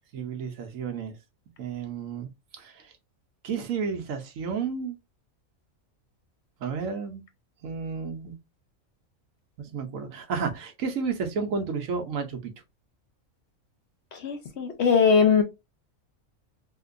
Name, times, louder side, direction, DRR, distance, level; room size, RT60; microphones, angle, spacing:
voice 1, 0.1-1.1 1.6-2.3 2.6-2.7 3.4-5.0 6.6-7.2 7.6-8.3 9.6-12.5, right 5 dB, 70° right, 1.1 m, -31 dB
voice 2, 14.2-15.4, left 6 dB, 65° left, 0.8 m, -20 dB
3.7 x 2.8 x 2.5 m
omnidirectional pair, 1.5 m